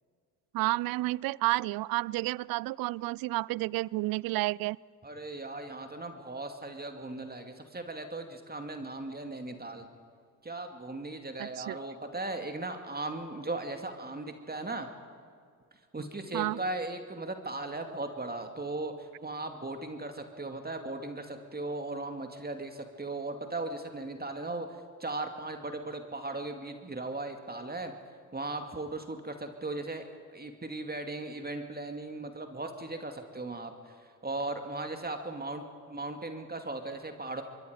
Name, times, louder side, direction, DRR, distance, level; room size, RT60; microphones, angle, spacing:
voice 1, 0.5-4.8 11.4-11.8 16.3-16.6, right 20 dB, 50° right, 26 dB, 0.5 m, -30 dB
voice 2, 5.0-9.9 10.4-14.9 15.9-24.7 25.0-27.9 28.3-37.4, right 2 dB, 20° right, 5 dB, 2.4 m, -37 dB
25.5 x 22.5 x 5.2 m, 2.1 s
hypercardioid pair, 50°, 46 cm